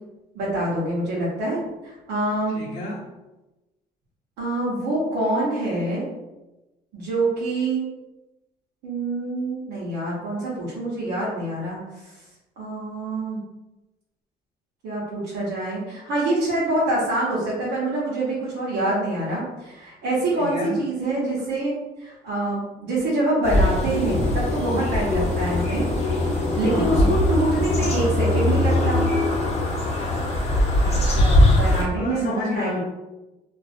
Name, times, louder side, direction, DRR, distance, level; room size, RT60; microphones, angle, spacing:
voice 1, 0.3-2.6 4.4-6.1 6.9-7.8 8.8-11.8 12.6-13.4 14.8-25.9 26.5-29.1 31.5-32.8, right 2 dB, 85° right, -8 dB, 0.8 m, -25 dB
voice 2, 2.5-3.1 20.4-20.8 26.7-27.1 30.8-32.8, left 2 dB, 75° left, -3 dB, 0.8 m, -31 dB
sound 1, 23.4-31.8, left 1 dB, 40° left, 0.7 m, -21 dB
2.4 x 2.1 x 2.4 m, 1.0 s
cardioid pair, 110°, 17 cm